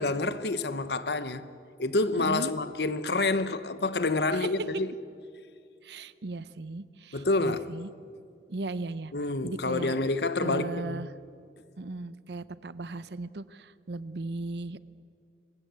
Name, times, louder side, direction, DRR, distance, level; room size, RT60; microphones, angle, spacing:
voice 1, 0.0-1.5 1.8-4.9 7.1-7.7 9.1-11.0, left 2 dB, 70° left, 1.0 m, -28 dB
voice 2, 2.1-2.5 4.3-4.5 5.8-7.9 8.5-9.1 9.4-9.9 10.4-11.1 11.8-14.8, right 2 dB, 75° right, 0.8 m, -37 dB
25.0 x 20.5 x 8.3 m
head